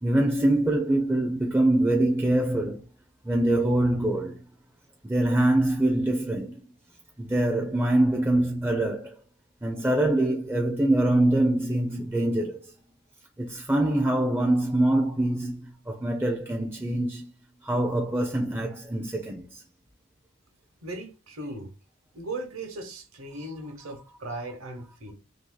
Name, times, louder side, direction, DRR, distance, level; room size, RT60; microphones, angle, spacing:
voice 1, 0.0-2.8 3.3-4.4 5.0-6.7 7.2-9.1 9.6-12.7 13.4-17.3 17.6-19.6 23.4-23.5, right 1 dB, 10° right, 0.4 m, -24 dB
voice 2, 20.8-21.7 22.1-25.1, right 2 dB, 70° right, 1.0 m, -37 dB
2.7 x 2.7 x 3.8 m
head